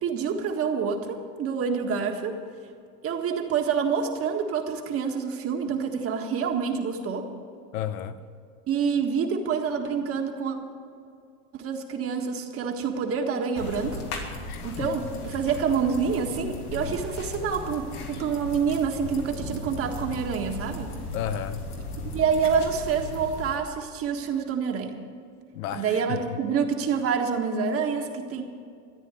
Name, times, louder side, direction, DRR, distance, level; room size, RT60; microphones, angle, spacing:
voice 1, 0.0-2.4 3.0-7.3 8.7-10.6 11.5-14.0 14.6-20.9 22.1-25.0 25.7-28.4, right 6 dB, 30° right, 1.7 m, -27 dB
voice 2, 7.7-8.2 14.5-14.9 21.1-21.7 25.5-26.4, left 10 dB, 70° left, 1.0 m, -33 dB
sound 1, 13.6-23.6, left 2 dB, 90° left, 3.1 m, -36 dB
14.0 x 9.1 x 9.0 m
supercardioid pair, 130°, 44 cm